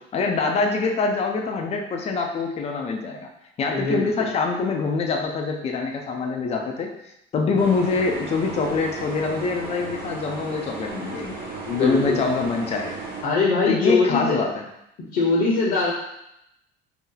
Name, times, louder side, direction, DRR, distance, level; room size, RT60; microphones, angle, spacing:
voice 1, 0.1-3.3 3.6-6.9 7.3-11.4 11.8-13.0 13.7-14.7, left 4 dB, 30° left, 2 dB, 0.4 m, -24 dB
voice 2, 3.7-4.1 11.6-12.2 13.2-14.4 15.1-15.9, left 4 dB, 55° left, -4 dB, 0.8 m, -21 dB
sound 1, 7.6-13.2, right 3 dB, 45° right, 0.8 m, -35 dB
2.8 x 2.0 x 3.8 m, 0.81 s
cardioid pair, 120°, 20 cm